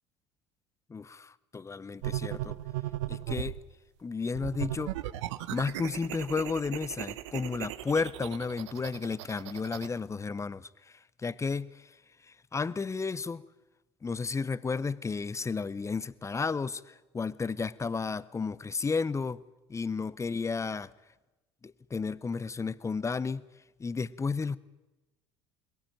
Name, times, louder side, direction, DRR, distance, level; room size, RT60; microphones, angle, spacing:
voice 1, 0.9-2.6 3.1-3.6 4.0-4.9 5.5-10.7 11.2-11.9 12.5-13.4 14.0-19.4 19.7-20.9 21.6-23.4 23.8-24.6, left 4 dB, 20° left, 19 dB, 0.7 m, -32 dB
sound 1, 2.0-3.6 4.3-9.9, right 14 dB, 75° right, 0.9 m, -37 dB
21.0 x 17.0 x 9.1 m, 1.1 s
hypercardioid pair, 75°, 15 cm